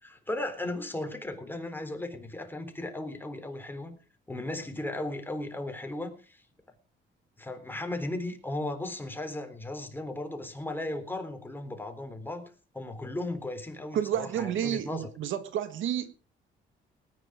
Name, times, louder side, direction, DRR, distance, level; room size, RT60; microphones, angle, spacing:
voice 1, 0.0-4.0 4.3-6.4 7.4-15.1, left 1 dB, 10° left, 3.8 m, -36 dB
voice 2, 13.9-16.1, right 10 dB, 75° right, 1.7 m, -30 dB
19.0 x 9.9 x 4.9 m
cardioid pair, 90°, 20 cm